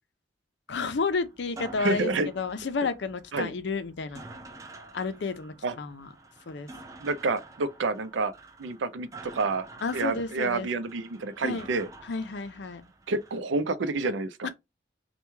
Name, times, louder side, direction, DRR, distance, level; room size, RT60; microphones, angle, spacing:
voice 1, 0.7-4.2 4.9-6.1 6.5-6.7 9.8-10.7 11.4-11.7 12.0-12.8 14.4-14.5, left 4 dB, 70° left, 0.5 m, -31 dB
sound 1, 0.7-13.4, right 3 dB, 15° right, 0.4 m, -48 dB
voice 2, 1.8-2.3 3.3-3.5 5.6-5.7 7.0-8.3 8.6-9.7 9.9-11.9 13.1-14.5, right 3 dB, 85° right, 0.5 m, -29 dB
3.1 x 2.3 x 3.2 m
head